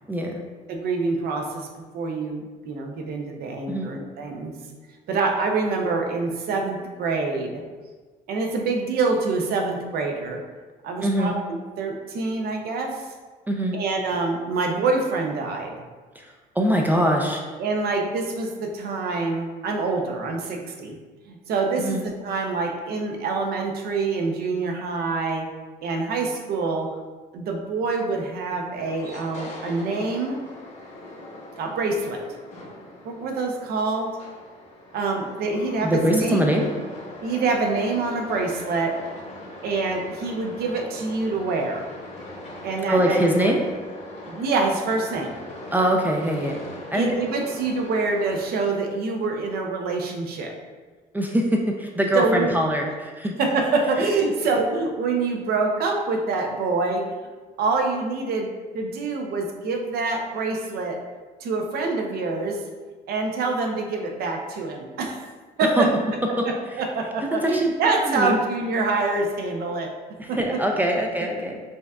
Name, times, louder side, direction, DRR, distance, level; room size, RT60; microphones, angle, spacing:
voice 1, 0.1-0.4 3.7-3.9 11.0-11.4 13.5-13.8 16.2-16.3 16.6-17.4 21.8-22.0 35.8-36.7 42.9-43.6 45.7-46.6 46.9-47.1 51.1-53.3 65.8-65.9 66.4-66.5 67.4-67.7 68.1-68.4 70.2-71.6, equal, 10° right, 0 dB, 0.3 m, -22 dB
voice 2, 0.7-4.6 5.1-7.6 8.3-10.4 10.8-13.1 13.7-15.7 16.9-17.1 17.6-21.0 21.3-25.5 25.8-26.9 27.3-30.4 31.5-32.2 33.0-34.1 34.9-36.5 37.2-39.0 39.6-41.8 42.6-43.5 44.3-45.4 46.9-50.5 52.1-52.5 53.4-57.1 57.6-58.5 58.7-61.0 61.4-62.6 63.1-65.2 65.6-65.9 66.8-69.9 70.3-70.4, right 3 dB, 65° right, 2 dB, 0.6 m, -26 dB
sound 1, 28.7-48.5, left 1 dB, 45° left, 0.9 m, -40 dB
5.1 x 2.4 x 2.3 m, 1.4 s
cardioid pair, 110°, 17 cm